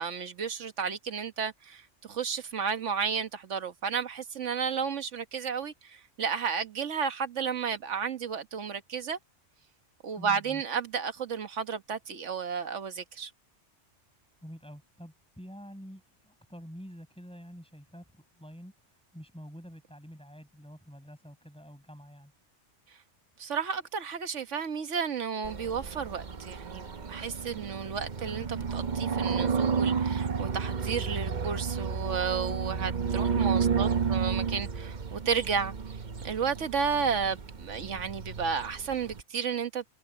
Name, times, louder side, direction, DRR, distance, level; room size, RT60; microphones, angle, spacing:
voice 1, 0.0-9.2 10.0-13.3 23.4-35.7 36.2-39.8, right 6 dB, 80° right, 1.6 m, -32 dB
voice 2, 10.2-10.6 14.4-22.3 33.7-34.2, equal, 5° left, 7.8 m, -47 dB
sound 1, 25.4-39.2, right 6 dB, 40° right, 1.0 m, -31 dB
omnidirectional pair, 1.2 m